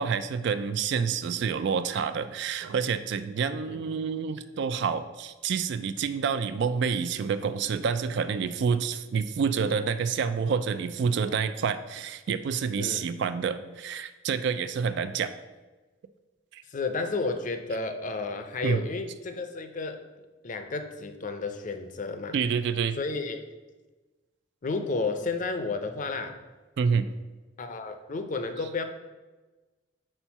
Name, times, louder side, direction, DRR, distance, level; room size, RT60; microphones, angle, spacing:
voice 1, 0.0-15.3 16.5-16.6 18.6-18.8 22.3-23.0 26.8-27.1, right 6 dB, 65° right, 12 dB, 0.3 m, -28 dB
voice 2, 12.8-13.1 16.7-20.0 20.4-22.4 23.0-23.4 24.6-26.4 27.6-28.8, left 3 dB, 45° left, 8 dB, 0.5 m, -32 dB
4.4 x 4.4 x 5.6 m, 1.2 s
head